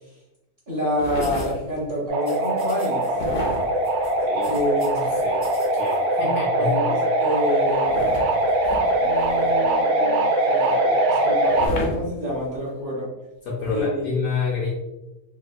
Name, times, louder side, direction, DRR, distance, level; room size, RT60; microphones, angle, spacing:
voice 1, 0.7-3.1 4.5-5.0 6.5-8.0 9.0-13.1 13.7-14.1, equal, 45° right, -6 dB, 0.8 m, -28 dB
sound 1, 1.0-1.9 3.1-5.5 7.8-9.8 11.5-12.7 13.6-13.8, left 1 dB, 85° left, 1.3 m, -33 dB
sound 2, 1.2-1.5 2.2-3.1 3.3-3.6 3.8-5.0 5.3-6.0, right 1 dB, 10° right, 0.7 m, -45 dB
sound 3, 2.1-11.7, right 1 dB, 70° right, 1.0 m, -22 dB
voice 2, 5.7-6.8 13.4-14.7, left 4 dB, 65° left, -3 dB, 0.9 m, -27 dB
3.3 x 2.7 x 2.2 m, 1.0 s
omnidirectional pair, 1.8 m